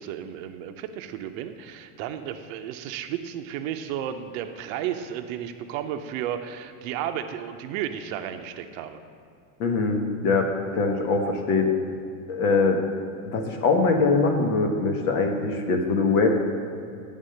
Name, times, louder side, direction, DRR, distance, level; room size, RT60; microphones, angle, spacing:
voice 1, 0.0-9.0, right 10 dB, 70° right, 8 dB, 0.6 m, -33 dB
voice 2, 9.6-10.5 10.7-11.7 12.3-12.8 13.3-16.3, left 4 dB, 85° left, 3 dB, 1.2 m, -22 dB
9.0 x 3.6 x 6.4 m, 2.4 s
supercardioid pair, 120°, 43 cm